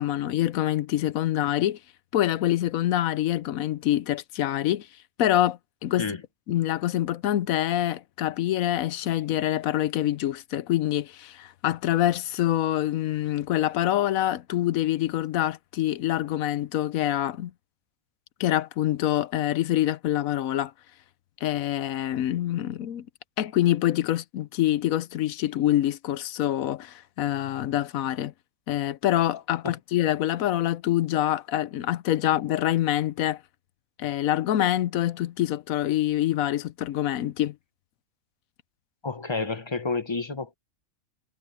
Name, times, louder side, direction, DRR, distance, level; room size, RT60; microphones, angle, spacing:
voice 1, 0.0-1.8 2.1-4.9 5.2-6.1 6.5-17.5 18.4-20.7 21.4-23.1 23.4-28.3 28.7-33.4 34.0-37.6, left 13 dB, 80° left, 1.1 m, -25 dB
voice 2, 39.0-40.6, left 4 dB, 25° left, 0.8 m, -30 dB
omnidirectional pair, 1.4 m